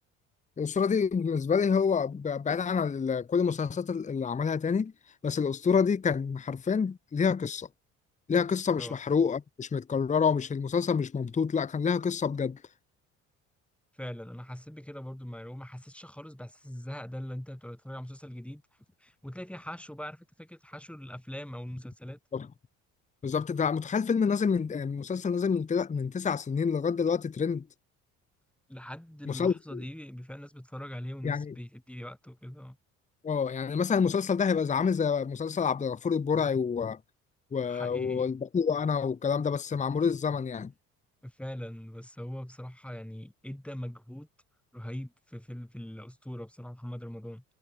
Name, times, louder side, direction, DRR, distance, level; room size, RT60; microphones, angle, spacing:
voice 1, 0.6-4.9 5.2-7.7 8.3-12.6 22.3-22.5 23.2-27.7 29.3-29.8 31.2-31.5 33.2-37.0 37.5-40.7, left 6 dB, 20° left, 0.8 m, -28 dB
voice 2, 13.9-18.6 19.0-22.2 28.7-32.8 37.6-38.3 41.2-44.3 44.7-47.4, equal, 5° left, 4.4 m, -41 dB
hypercardioid pair, 60°, 39 cm